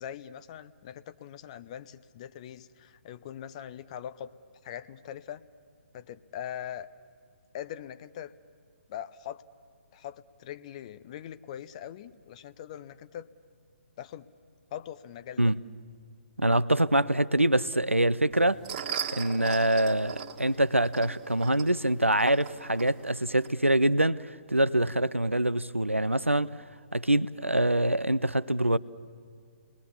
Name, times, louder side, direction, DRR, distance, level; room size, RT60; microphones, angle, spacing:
voice 1, 0.0-4.3 4.6-5.4 5.9-6.9 7.5-8.3 8.9-9.4 9.9-13.3 14.0-14.3 14.7-15.5, left 10 dB, 30° left, 0.6 m, -41 dB
voice 2, 16.4-18.6 19.1-26.5 26.9-28.8, right 1 dB, 90° right, 0.6 m, -25 dB
sound 1, 18.3-23.5, right 8 dB, 35° right, 1.7 m, -39 dB
30.0 x 20.5 x 7.1 m
figure-of-eight pair, 130°, 7 cm